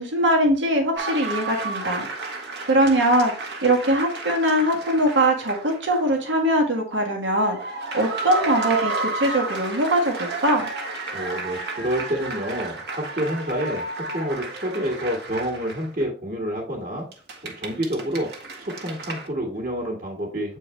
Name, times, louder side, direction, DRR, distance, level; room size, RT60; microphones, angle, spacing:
voice 1, 0.0-2.1 2.7-3.3 3.6-7.6 7.9-10.7, right 1 dB, 85° right, 2 dB, 1.6 m, -21 dB
sound 1, 0.9-6.1 6.4-6.5 7.4-16.0 17.1-19.3, right 3 dB, 65° right, 1.4 m, -32 dB
voice 2, 11.1-17.1 17.4-18.3 18.6-20.6, equal, 50° right, -2 dB, 1.7 m, -28 dB
7.9 x 4.5 x 3.2 m, 0.38 s
head